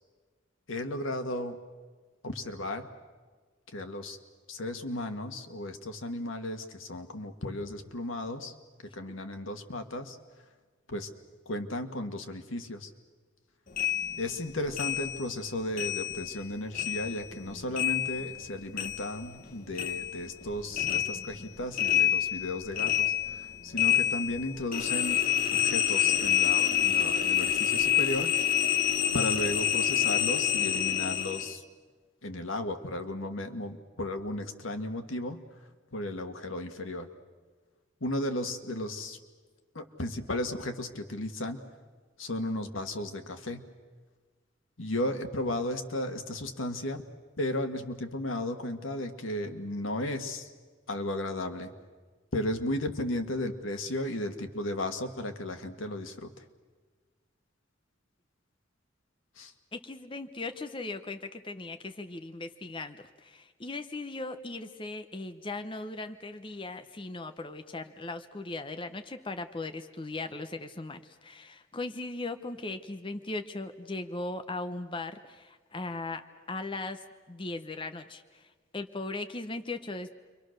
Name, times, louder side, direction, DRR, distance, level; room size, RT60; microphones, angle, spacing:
voice 1, 0.7-1.6 2.2-2.9 3.7-4.2 4.5-8.5 8.9-10.2 10.9-11.1 11.4-12.9 14.2-25.2 25.5-28.3 29.1-31.6 32.2-35.4 35.9-37.1 38.0-39.2 39.7-41.6 42.2-43.6 44.8-47.0 47.4-50.5 50.9-51.7 52.3-56.3 59.4-59.5, left 1 dB, 90° left, 6 dB, 1.8 m, -34 dB
sound 1, 13.8-16.5 16.7-19.5 19.7-31.5, left 11 dB, 45° left, 1.1 m, -28 dB
voice 2, 59.7-78.5 78.7-80.1, left 2 dB, 25° left, 8 dB, 0.8 m, -38 dB
29.5 x 24.0 x 6.6 m, 1.4 s
head